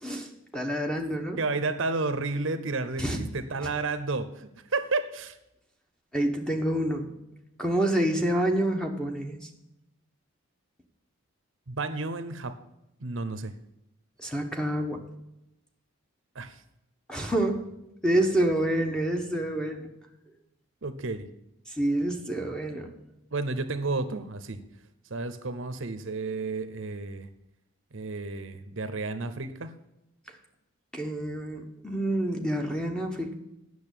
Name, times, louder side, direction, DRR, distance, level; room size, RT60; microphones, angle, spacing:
voice 1, 0.0-1.4 3.0-3.2 6.1-7.1 7.6-9.4 14.2-15.1 17.1-17.7 18.0-19.9 21.7-22.9 30.9-33.3, right 1 dB, 5° left, 3 dB, 1.1 m, -27 dB
voice 2, 1.4-5.4 11.7-12.6 13.0-13.5 16.3-16.6 20.8-21.3 23.3-24.6 25.1-27.3 27.9-29.7, right 3 dB, 60° right, 11 dB, 0.8 m, -31 dB
8.9 x 6.6 x 8.3 m, 0.88 s
head